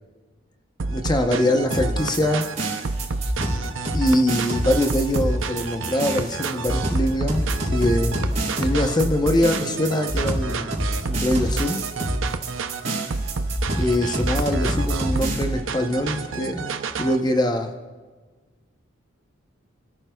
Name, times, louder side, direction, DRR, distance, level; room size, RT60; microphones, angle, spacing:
sound 1, 0.8-17.2, right 4 dB, 70° right, 0.6 m, -30 dB
voice 1, 0.9-2.5 3.9-8.2 8.6-11.8 13.8-17.8, left 1 dB, 20° left, 6 dB, 0.8 m, -23 dB
sound 2, 1.7-15.4, right 1 dB, 35° right, 4.0 m, -26 dB
28.5 x 13.5 x 2.3 m, 1.4 s
head